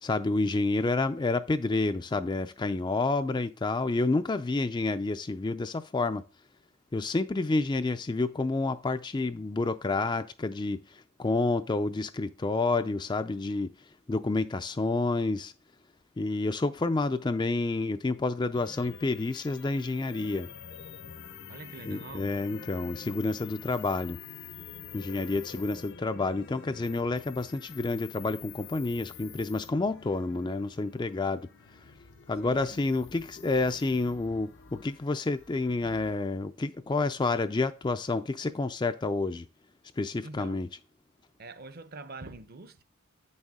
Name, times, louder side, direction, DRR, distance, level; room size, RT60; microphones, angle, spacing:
voice 1, 0.0-6.2 6.9-13.7 14.1-15.5 16.2-20.5 21.9-24.2 24.9-31.5 32.3-39.5 40.0-40.7, left 3 dB, 20° left, 0.3 m, -29 dB
sound 1, 18.5-36.1, left 6 dB, 50° left, 0.6 m, -47 dB
voice 2, 21.5-22.3 32.4-32.8 40.2-40.6 41.4-42.8, right 3 dB, 45° right, 0.7 m, -45 dB
8.8 x 6.5 x 3.6 m
head